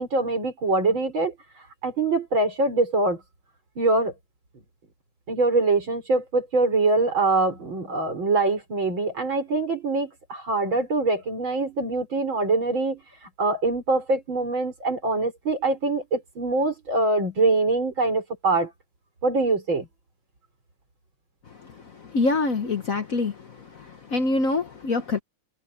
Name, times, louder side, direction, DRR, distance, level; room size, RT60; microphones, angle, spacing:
voice 1, 0.0-1.3 1.8-3.2 3.8-4.1 5.3-13.0 13.4-18.7 19.2-19.9, right 3 dB, 65° right, 6.4 m, -24 dB
voice 2, 22.0-23.4 23.7-25.2, left 3 dB, 45° left, 1.3 m, -25 dB
omnidirectional pair, 2.3 m